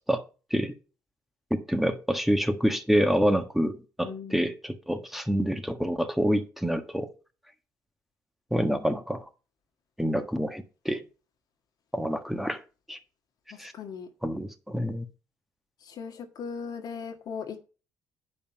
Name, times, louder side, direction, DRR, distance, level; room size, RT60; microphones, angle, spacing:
voice 1, 1.5-7.1 8.5-9.3 10.0-11.0 11.9-12.6 12.9-13.0 13.6-13.7 14.2-15.0, equal, 5° right, 7 dB, 1.5 m, -27 dB
voice 2, 4.0-4.5 13.5-14.1 15.8-17.6, left 6 dB, 60° left, 5 dB, 1.7 m, -38 dB
8.7 x 5.6 x 5.6 m, 0.34 s
hypercardioid pair, 55°, 7 cm